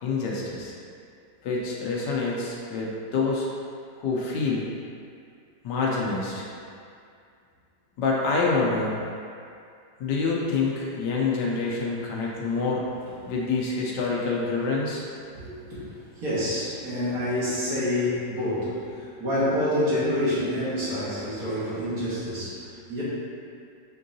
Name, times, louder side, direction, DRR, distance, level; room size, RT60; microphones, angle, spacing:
voice 1, 0.0-0.7 1.4-3.5 4.0-4.7 5.6-6.5 8.0-9.0 10.0-12.8 13.3-15.0, left 4 dB, 75° left, -3 dB, 1.3 m, -26 dB
voice 2, 15.3-15.8 16.1-23.0, left 1 dB, 55° right, -10 dB, 1.7 m, -27 dB
5.4 x 3.7 x 2.6 m, 2.4 s
omnidirectional pair, 2.0 m